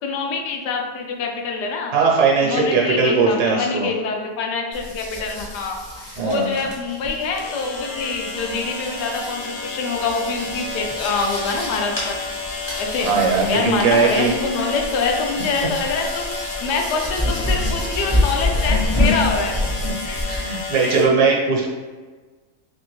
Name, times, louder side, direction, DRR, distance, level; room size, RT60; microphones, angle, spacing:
voice 1, 0.0-1.9 2.4-5.8 6.2-12.2 12.8-16.3 16.6-19.5 20.1-20.2, left 4 dB, 80° left, 2 dB, 1.2 m, -25 dB
voice 2, 1.9-3.9 6.2-6.5 13.0-14.3 20.2-21.7, right 4 dB, 75° right, -2 dB, 1.3 m, -19 dB
sound 1, 4.7-20.4, left 2 dB, 25° left, 0.7 m, -27 dB
sound 2, 5.3-5.4 7.4-21.1, left 3 dB, 60° left, 0.9 m, -31 dB
3.2 x 3.2 x 3.0 m, 1.3 s
omnidirectional pair, 1.8 m